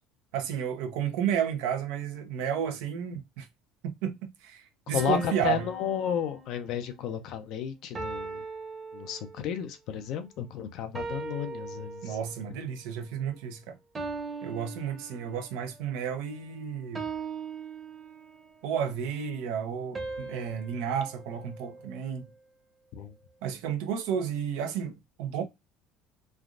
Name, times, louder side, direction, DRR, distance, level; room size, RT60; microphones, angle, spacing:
voice 1, 0.3-3.5 4.0-5.7 12.0-13.8 14.4-17.1 18.6-22.3 23.4-25.4, right 8 dB, 80° right, 0.7 m, -32 dB
voice 2, 4.9-8.4 8.9-12.2 22.9-23.1, left 9 dB, 65° left, 0.5 m, -32 dB
sound 1, 5.0-6.9 7.9-9.6 10.9-12.5 13.9-15.6 16.9-18.6 19.9-22.3, right 4 dB, 25° right, 0.9 m, -40 dB
3.3 x 2.4 x 2.5 m
supercardioid pair, 100°, 0 cm